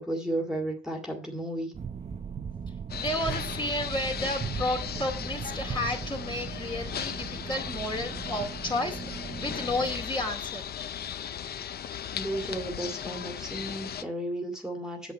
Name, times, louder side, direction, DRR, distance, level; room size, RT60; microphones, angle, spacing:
voice 1, 0.0-1.7 12.1-15.1, right 1 dB, 5° right, 1 dB, 1.9 m, -33 dB
sound 1, 1.7-10.0, right 6 dB, 30° right, 0.7 m, -38 dB
sound 2, 2.9-14.0, left 9 dB, 50° left, 0.6 m, -37 dB
voice 2, 3.0-10.6, left 1 dB, 25° left, 3 dB, 2.5 m, -32 dB
8.2 x 7.6 x 4.4 m, 0.36 s
cardioid pair, 90°, 20 cm